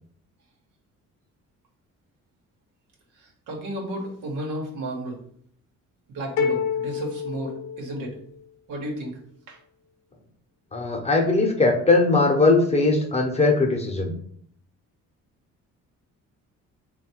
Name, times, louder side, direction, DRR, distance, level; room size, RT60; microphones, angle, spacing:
voice 1, 3.2-5.2 6.1-8.2 8.7-9.2 9.5-9.6, right 1 dB, 85° right, 1 dB, 1.0 m, -33 dB
sound 1, 6.4-8.4, left 6 dB, 65° left, 0.5 m, -28 dB
voice 2, 10.7-14.1, left 3 dB, 20° left, 2 dB, 0.8 m, -20 dB
3.3 x 2.3 x 4.3 m, 0.64 s
cardioid pair, 90°, 30 cm